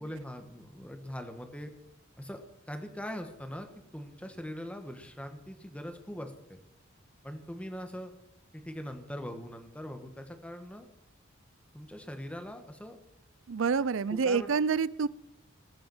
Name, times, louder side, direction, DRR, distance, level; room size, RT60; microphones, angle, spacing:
voice 1, 0.0-1.7 2.2-3.7 3.9-6.6 7.2-8.1 8.5-10.9 11.7-13.0 14.1-14.5, equal, 5° left, 6 dB, 1.5 m, -41 dB
voice 2, 13.5-15.1, right 5 dB, 65° right, 19 dB, 0.5 m, -27 dB
20.0 x 7.0 x 7.3 m, 0.83 s
head